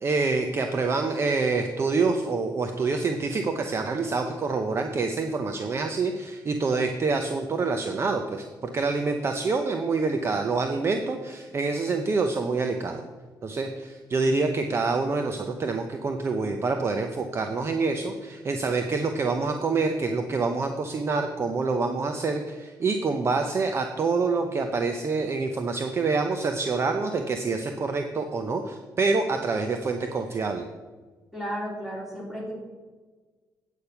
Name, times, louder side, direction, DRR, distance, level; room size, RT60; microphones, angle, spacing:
voice 1, 0.0-13.0 13.4-30.6, right 4 dB, 35° right, 5 dB, 0.7 m, -26 dB
voice 2, 31.3-32.5, equal, 5° right, -5 dB, 3.5 m, -33 dB
8.7 x 8.2 x 5.7 m, 1.4 s
cardioid pair, 155°, 8 cm